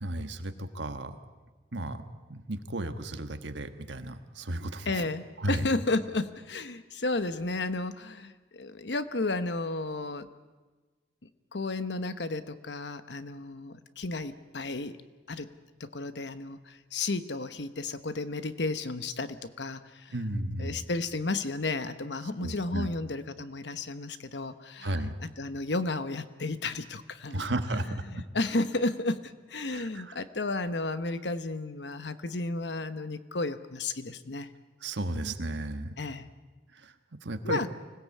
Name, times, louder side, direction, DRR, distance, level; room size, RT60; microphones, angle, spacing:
voice 1, 0.0-1.2 1.7-2.0 2.3-5.1 5.4-5.7 20.1-20.9 22.4-22.9 24.8-25.1 27.3-28.2 29.7-30.2 34.8-36.0 36.7-36.9 37.2-37.6, right 1 dB, 75° right, 9 dB, 1.4 m, -34 dB
voice 2, 4.8-10.3 11.5-15.0 15.3-15.5 15.8-20.1 20.6-25.0 25.4-27.4 28.1-34.5 36.0-36.3 37.4-37.7, left 2 dB, 65° left, 12 dB, 1.1 m, -33 dB
25.0 x 17.0 x 8.5 m, 1.3 s
head